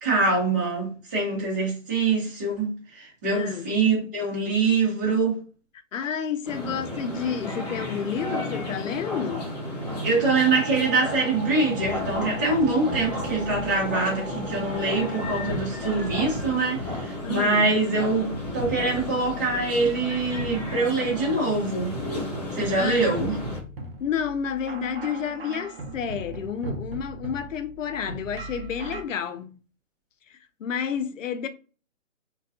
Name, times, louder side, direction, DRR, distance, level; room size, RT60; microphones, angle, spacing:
voice 1, 0.0-5.4 10.0-22.0 22.5-23.4, right 3 dB, 15° right, 0.8 m, -24 dB
voice 2, 3.3-3.7 5.9-9.5 17.2-17.7 22.7-23.1 24.0-29.6 30.3-31.5, left 7 dB, 75° left, 0.5 m, -30 dB
sound 1, 6.4-23.6, left 1 dB, 30° left, 1.0 m, -34 dB
sound 2, 10.2-15.4, right 3 dB, 80° right, 0.8 m, -38 dB
sound 3, 11.8-29.0, right 1 dB, 50° right, 0.6 m, -39 dB
2.3 x 2.2 x 2.5 m
hypercardioid pair, 165°, 39 cm